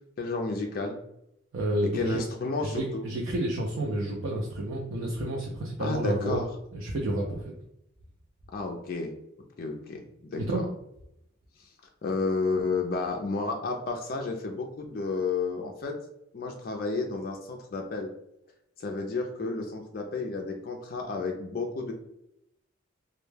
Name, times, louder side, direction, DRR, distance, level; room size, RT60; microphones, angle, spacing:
voice 1, 0.2-1.0 1.9-3.0 5.8-6.5 8.5-9.1 9.6-10.6 11.6-11.7 12.0-16.0 16.3-18.1 18.8-21.9, left 3 dB, 45° left, 2 dB, 0.3 m, -31 dB
voice 2, 1.5-2.2 2.6-6.4 6.7-7.5 10.4-10.6, right 1 dB, 80° right, -2 dB, 0.5 m, -30 dB
2.2 x 2.1 x 3.2 m, 0.82 s
head